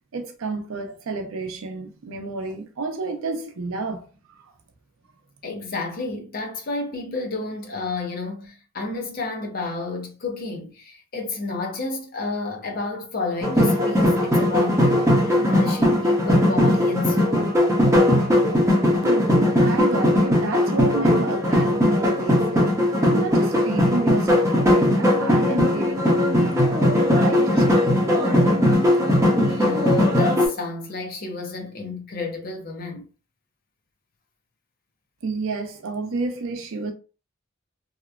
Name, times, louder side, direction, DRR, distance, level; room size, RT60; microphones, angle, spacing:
voice 1, 0.1-4.1 19.0-22.7 23.1-28.8 35.2-36.9, right 3 dB, 85° right, 0.5 m, -30 dB
voice 2, 5.4-17.6 29.5-33.1, left 3 dB, 45° left, 0.6 m, -31 dB
sound 1, 13.4-30.5, left 1 dB, 15° right, 0.8 m, -19 dB
2.8 x 2.1 x 2.4 m
head